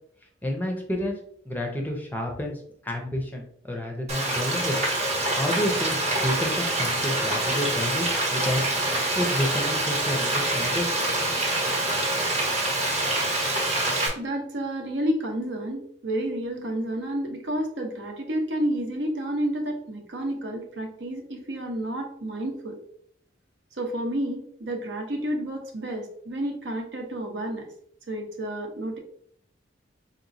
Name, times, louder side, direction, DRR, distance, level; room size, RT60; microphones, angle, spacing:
voice 1, 0.4-1.2 1.5-4.8 5.3-8.6 9.1-10.9, left 1 dB, 10° left, 2 dB, 0.5 m, -30 dB
Frying (food), 4.1-14.1, right 1 dB, 35° right, 0.9 m, -25 dB
voice 2, 14.1-22.8 23.8-27.7 28.1-29.0, right 1 dB, 70° right, 3 dB, 0.8 m, -30 dB
4.2 x 3.0 x 2.6 m, 0.64 s
head